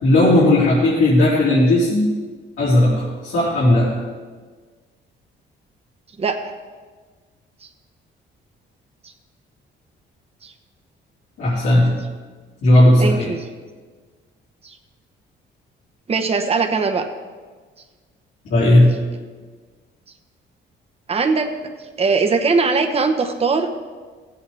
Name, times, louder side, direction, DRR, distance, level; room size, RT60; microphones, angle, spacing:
voice 1, 0.0-2.1 2.6-4.0 11.4-12.0 12.6-13.3 18.5-18.9, left 1 dB, 80° left, -9 dB, 3.2 m, -15 dB
voice 2, 13.0-13.4 14.6-14.8 16.1-17.1 21.1-21.5 22.0-23.9, right 4 dB, 30° right, 4 dB, 1.0 m, -20 dB
17.5 x 8.1 x 3.5 m, 1.5 s
cardioid pair, 90°, 20 cm